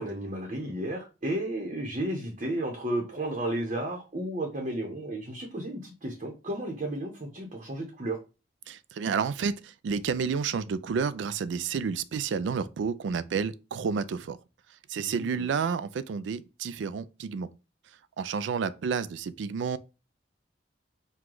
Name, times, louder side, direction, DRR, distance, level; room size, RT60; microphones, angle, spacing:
voice 1, 0.0-8.2 15.0-15.6, right 1 dB, 40° right, 0.8 m, -33 dB
voice 2, 8.7-14.4 14.9-17.5 18.2-19.8, right 6 dB, 85° right, 0.4 m, -30 dB
4.7 x 2.3 x 3.8 m
head